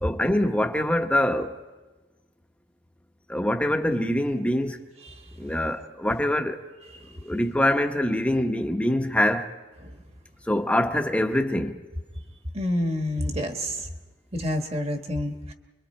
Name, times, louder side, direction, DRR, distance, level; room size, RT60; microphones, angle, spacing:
voice 1, 0.0-1.5 3.3-4.8 5.4-6.6 7.2-9.5 10.5-11.8, left 1 dB, 5° left, 0.9 m, -24 dB
voice 2, 12.5-13.9 14.3-15.5, left 1 dB, 35° right, 1.5 m, -28 dB
30.0 x 23.5 x 4.4 m
head